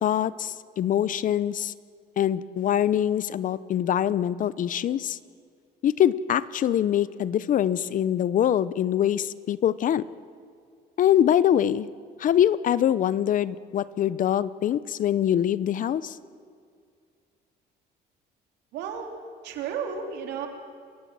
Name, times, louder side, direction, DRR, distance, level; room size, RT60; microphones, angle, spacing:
voice 1, 0.0-1.7 2.2-5.2 5.8-10.0 11.0-11.9 12.2-16.2, left 10 dB, 50° left, 17 dB, 0.7 m, -24 dB
voice 2, 18.7-19.1 19.4-20.5, right 7 dB, 85° right, 3 dB, 3.2 m, -33 dB
28.0 x 15.5 x 7.7 m, 2.2 s
cardioid pair, 110°, 17 cm